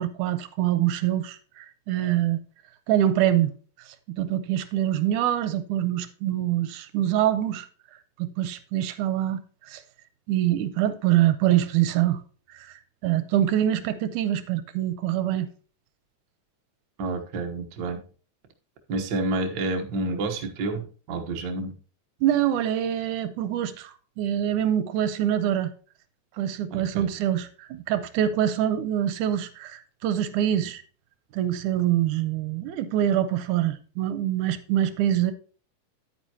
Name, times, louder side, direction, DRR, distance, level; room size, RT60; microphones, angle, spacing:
voice 1, 0.0-2.4 2.9-3.5 4.1-7.7 8.2-9.8 10.3-12.2 12.5-15.5 22.2-25.7 26.4-30.8 31.3-35.3, right 11 dB, 80° right, 2.1 m, -25 dB
voice 2, 17.0-18.0 18.9-21.7 26.7-27.1, right 2 dB, 60° right, 1.1 m, -29 dB
10.0 x 9.2 x 2.8 m
omnidirectional pair, 3.7 m